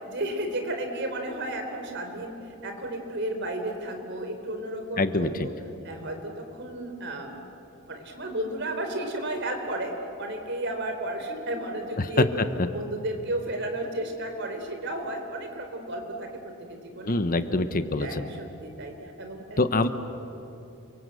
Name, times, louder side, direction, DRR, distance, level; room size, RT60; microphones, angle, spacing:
voice 1, 0.1-5.5 5.8-7.4 7.9-9.9 10.2-12.3 12.7-17.2 18.0-18.9 19.2-19.6, right 1 dB, 55° right, 5 dB, 3.8 m, -33 dB
voice 2, 5.0-5.5 12.0-12.2 17.0-18.3 19.6-19.9, left 2 dB, 40° left, 10 dB, 1.1 m, -24 dB
29.0 x 24.0 x 7.9 m, 2.9 s
head